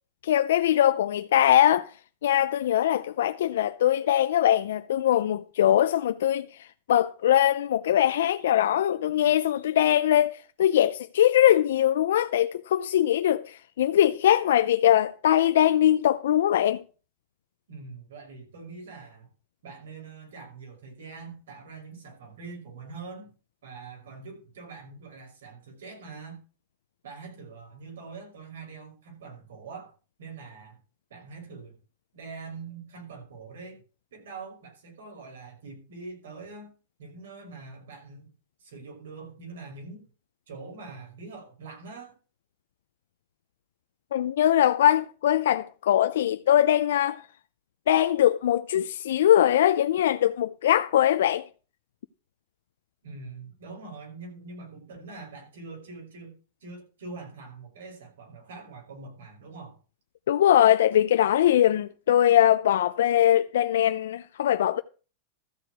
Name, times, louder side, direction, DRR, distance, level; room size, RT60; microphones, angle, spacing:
voice 1, 0.2-1.9 2.2-16.8 44.1-47.2 47.9-51.4 60.3-64.8, left 11 dB, 85° left, 0.5 m, -22 dB
voice 2, 17.7-19.3 19.6-23.3 23.6-26.4 27.0-29.9 30.2-30.8 31.1-31.8 32.1-33.8 34.1-36.7 37.0-38.3 38.6-40.0 40.5-42.2 53.0-59.8, right 4 dB, 90° right, 5.9 m, -43 dB
13.5 x 4.8 x 8.1 m
supercardioid pair, 150°, 0 cm